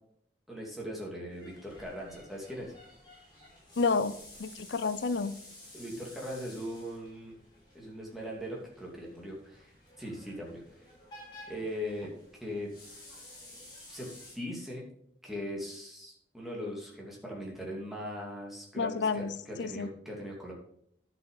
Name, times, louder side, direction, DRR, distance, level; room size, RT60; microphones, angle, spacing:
voice 1, 0.5-2.7 5.7-7.3 7.7-9.7 10.0-10.6 11.5-12.1 12.4-12.7 13.9-14.1 14.3-14.8 15.2-20.5, equal, ahead, -3 dB, 2.7 m, -40 dB
sound 1, 1.3-14.3, left 1 dB, 25° left, 4.9 m, -53 dB
voice 2, 3.8-4.1 4.4-5.3 18.8-19.3 19.6-19.9, left 4 dB, 85° left, 14 dB, 0.6 m, -29 dB
10.5 x 6.3 x 5.6 m, 0.68 s
head